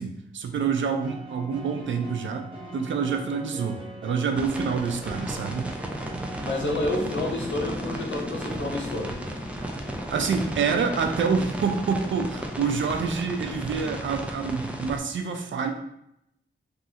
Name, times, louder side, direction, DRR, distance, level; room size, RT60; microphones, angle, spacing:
voice 1, 0.0-2.5 2.7-5.7 10.1-15.7, right 5 dB, 70° right, 4 dB, 0.4 m, -27 dB
sound 1, 0.9-6.9, right 2 dB, 25° right, 0.9 m, -41 dB
sound 2, 4.3-15.0, right 1 dB, 5° right, 0.4 m, -35 dB
voice 2, 6.4-9.2, left 2 dB, 70° left, -2 dB, 0.8 m, -29 dB
sound 3, 6.6-13.8, left 1 dB, 25° left, 1.1 m, -41 dB
3.1 x 2.4 x 2.8 m, 0.78 s
wide cardioid pair, 95°, 20 cm